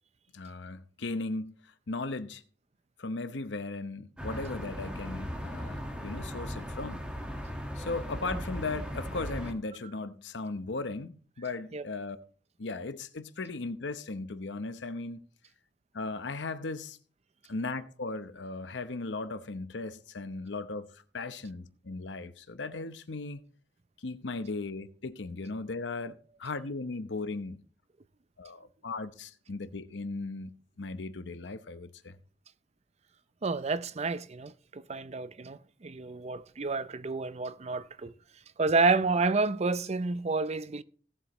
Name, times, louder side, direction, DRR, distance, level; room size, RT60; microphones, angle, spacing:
voice 1, 0.3-1.5 1.9-2.4 3.0-7.0 7.8-12.2 12.6-15.2 15.9-17.0 17.5-23.4 24.0-27.6 28.4-32.2, left 3 dB, 75° left, 0.8 m, -37 dB
sound 1, 4.2-9.5, equal, 5° right, 1.6 m, -38 dB
voice 2, 33.4-38.1 38.6-40.8, right 3 dB, 35° right, 0.5 m, -29 dB
17.5 x 7.9 x 3.1 m
head